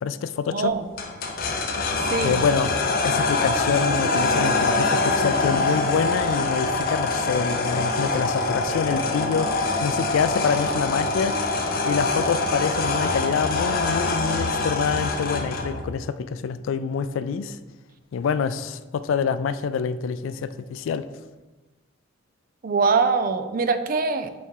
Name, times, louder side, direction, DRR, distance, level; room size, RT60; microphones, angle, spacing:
voice 1, 0.0-0.7 2.2-2.8 3.0-11.4 11.9-17.6 18.1-21.0, left 6 dB, 75° left, 14 dB, 0.3 m, -26 dB
voice 2, 0.5-0.9 2.1-2.4 22.6-24.3, right 4 dB, 45° right, 9 dB, 0.4 m, -23 dB
sound 1, 1.0-15.8, left 3 dB, 50° left, 0.7 m, -24 dB
5.7 x 4.2 x 4.7 m, 1.2 s
head